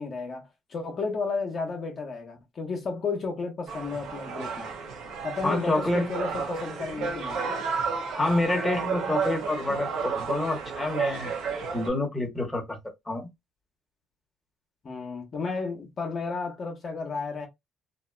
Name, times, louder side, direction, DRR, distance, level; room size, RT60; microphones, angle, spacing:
voice 1, 0.0-4.7 5.2-7.5 14.8-17.5, left 4 dB, 50° left, 0.9 m, -33 dB
sound 1, 3.7-11.9, right 5 dB, 75° right, 0.8 m, -32 dB
voice 2, 5.4-6.1 8.1-11.3 11.7-12.8 13.1-13.3, left 2 dB, 15° left, 1.2 m, -27 dB
2.7 x 2.5 x 2.2 m
supercardioid pair, 80°, 0 cm